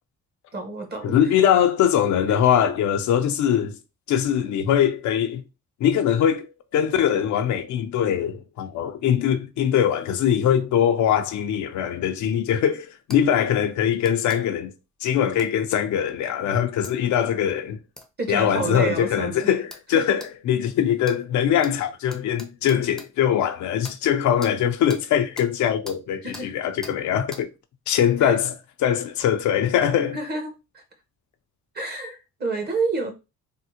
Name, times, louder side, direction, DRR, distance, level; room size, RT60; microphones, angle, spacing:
voice 1, 0.5-1.3 2.3-2.4 18.2-19.5 19.9-20.0 26.2-26.5 28.2-28.4 30.1-30.8 31.7-33.1, right 3 dB, 35° right, 1.0 m, -29 dB
voice 2, 1.0-3.8 4.1-5.4 5.8-14.7 15.0-17.8 18.3-27.5 27.9-28.5 28.8-30.2, left 9 dB, 70° left, 0.5 m, -22 dB
Light Metal Impacts, 13.1-13.2 14.0-14.4 15.4-15.5 16.8-16.9 18.0-18.1 18.7-18.8 19.7-19.9 20.2-20.3 21.0-21.2 21.6-21.7 22.1-23.1 23.8-24.0 24.4-24.5 24.9-25.0 25.4-25.5 25.8-26.0 26.3-26.5 26.8-27.0 27.3-27.4, left 1 dB, ahead, 0.6 m, -41 dB
3.5 x 2.1 x 2.8 m
cardioid pair, 90°, 30 cm